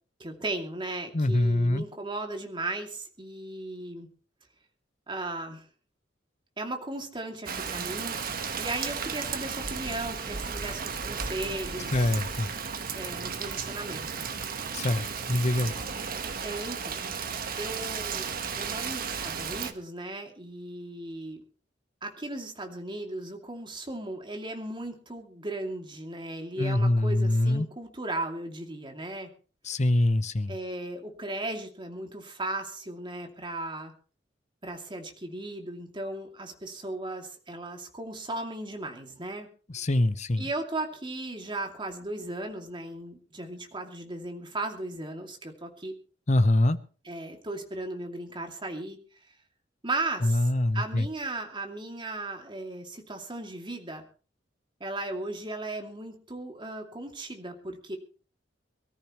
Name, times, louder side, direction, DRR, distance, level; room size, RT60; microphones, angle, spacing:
voice 1, 0.2-4.1 5.1-5.6 6.6-8.2 8.6-12.1 12.9-14.3 16.4-17.0 17.6-18.3 18.6-21.4 22.0-29.3 30.5-33.9 34.6-39.5 40.4-46.0 47.0-49.0 49.8-54.0 54.8-58.0, right 2 dB, 25° right, 3 dB, 2.5 m, -36 dB
voice 2, 1.1-1.8 11.9-12.5 14.7-15.7 26.6-27.7 29.7-30.5 39.7-40.4 46.3-46.8 50.2-51.0, left 1 dB, 40° left, 13 dB, 0.9 m, -24 dB
Rain, 7.5-19.7, right 6 dB, 55° right, 1.3 m, -34 dB
23.5 x 14.0 x 3.1 m, 0.37 s
head